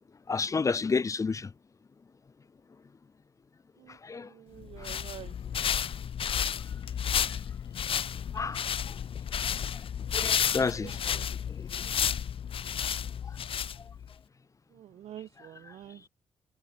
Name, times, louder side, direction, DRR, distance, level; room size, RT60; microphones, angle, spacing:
voice 1, 0.3-1.5 3.9-4.3 4.8-4.9 7.3-7.4 8.3-8.9 9.7-9.8 10.1-11.2 11.5-11.7 13.2-13.4 13.8-13.9 15.4-15.7, left 4 dB, 30° left, 0.8 m, -32 dB
voice 2, 4.3-5.3 10.1-11.3 14.7-16.1, right 11 dB, 75° right, 0.9 m, -48 dB
sound 1, 4.6-14.1, left 8 dB, 55° left, 1.4 m, -32 dB
cardioid pair, 95°, 11 cm